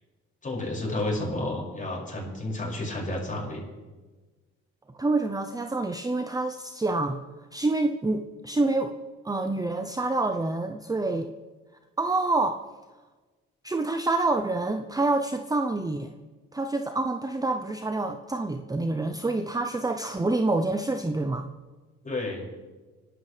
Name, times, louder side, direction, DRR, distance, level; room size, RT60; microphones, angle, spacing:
voice 1, 0.4-3.6 22.0-22.4, left 2 dB, 25° left, -2 dB, 6.1 m, -31 dB
voice 2, 5.0-7.2 7.5-8.9 9.2-11.3 12.0-12.6 13.6-16.1 16.5-21.5, right 2 dB, 10° right, 6 dB, 0.7 m, -27 dB
26.0 x 12.0 x 3.4 m, 1.3 s
cardioid pair, 90°, 30 cm